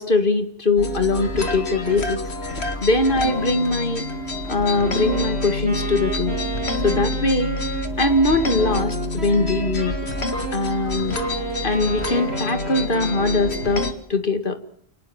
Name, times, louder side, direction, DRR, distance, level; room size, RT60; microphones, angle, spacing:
voice 1, 0.0-2.2 2.8-4.0 4.5-6.4 6.8-7.6 8.0-10.0 10.5-11.2 11.6-14.6, left 2 dB, 55° left, 9 dB, 2.5 m, -21 dB
sound 1, 0.8-13.9, left 1 dB, 80° left, 2.5 m, -27 dB
Wind instrument woodwind instrument, 4.5-10.6 11.1-13.8, right 2 dB, 85° right, 4.0 m, -33 dB
28.0 x 19.5 x 7.3 m, 0.63 s
omnidirectional pair, 1.1 m